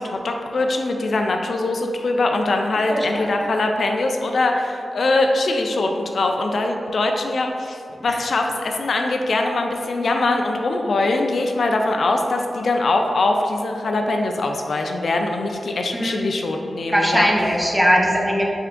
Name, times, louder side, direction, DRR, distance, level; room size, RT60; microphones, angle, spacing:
voice 1, 0.0-17.3, left 2 dB, 70° left, 3 dB, 0.3 m, -22 dB
voice 2, 2.9-3.3 8.1-8.2 15.9-16.2 16.9-18.4, equal, 5° right, -1 dB, 0.6 m, -19 dB
3.5 x 3.3 x 3.6 m, 2.6 s
wide cardioid pair, 85°, 0 cm